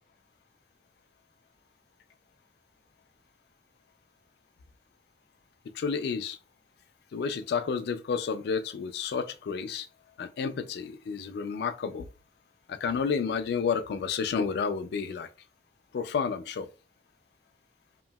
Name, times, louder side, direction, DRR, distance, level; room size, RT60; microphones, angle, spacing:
voice 1, 5.7-6.4 7.1-9.9 10.2-12.1 12.7-15.3 15.9-16.7, left 6 dB, 65° left, 0.3 m, -30 dB
2.9 x 2.7 x 2.2 m
head